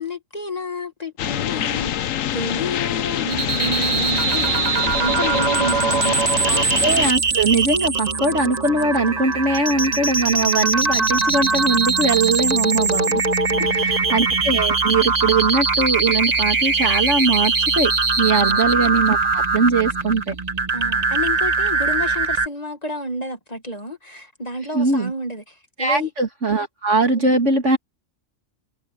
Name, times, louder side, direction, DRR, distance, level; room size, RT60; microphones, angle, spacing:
voice 1, 0.0-6.6 13.5-14.1 18.3-18.7 20.7-26.1 27.1-27.6, left 1 dB, 30° left, 1.9 m, -30 dB
sound 1, 1.2-7.1, left 11 dB, 80° left, 1.1 m, -25 dB
sound 2, 3.3-22.5, right 4 dB, 35° right, 1.1 m, -21 dB
voice 2, 6.5-13.2 13.6-17.9 18.2-20.3 24.7-25.1 25.8-27.8, right 3 dB, 65° right, 2.9 m, -21 dB
omnidirectional pair, 1.4 m